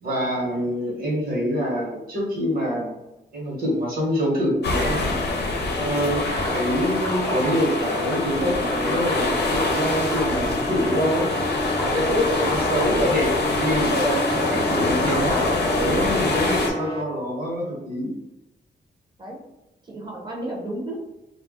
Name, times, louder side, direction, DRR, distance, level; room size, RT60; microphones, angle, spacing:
voice 1, 0.0-3.0 3.3-5.0 5.8-6.2 6.5-11.3 11.8-18.1, equal, 55° right, -4 dB, 1.3 m, -25 dB
sound 1, 4.6-16.7, left 2 dB, 65° left, 0.7 m, -25 dB
sound 2, 6.1-17.0, left 1 dB, 20° left, 0.7 m, -31 dB
voice 2, 19.8-20.9, right 1 dB, 25° right, -2 dB, 0.9 m, -33 dB
2.4 x 2.2 x 3.7 m, 0.96 s
wide cardioid pair, 110°, 18 cm